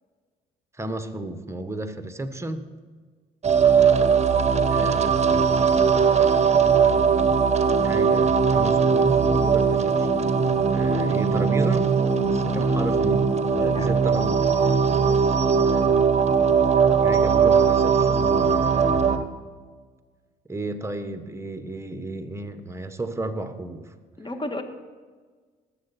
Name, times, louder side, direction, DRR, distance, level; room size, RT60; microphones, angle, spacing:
voice 1, 0.7-2.7 4.7-5.6 7.8-10.1 10.7-11.9 12.3-13.3 13.6-14.5 15.6-16.0 17.0-19.3 20.5-23.9, right 1 dB, 15° right, 8 dB, 1.4 m, -33 dB
sound 1, 3.4-19.2, right 6 dB, 35° right, 1.1 m, -20 dB
voice 2, 14.6-15.2 24.2-24.6, left 1 dB, 25° left, 6 dB, 1.8 m, -35 dB
19.0 x 7.9 x 4.4 m, 1.5 s
hypercardioid pair, 55°, 20 cm